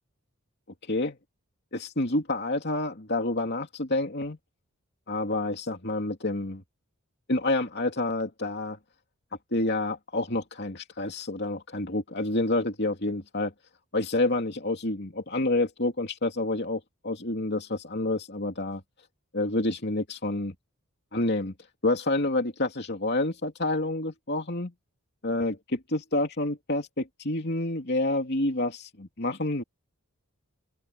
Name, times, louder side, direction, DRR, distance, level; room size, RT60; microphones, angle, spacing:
voice 1, 1.7-4.4 5.1-6.6 7.3-8.8 9.5-13.5 13.9-18.8 19.3-20.5 21.1-21.5 21.8-24.7 25.2-29.6, left 2 dB, 50° left, 2.8 m, -28 dB
open air
head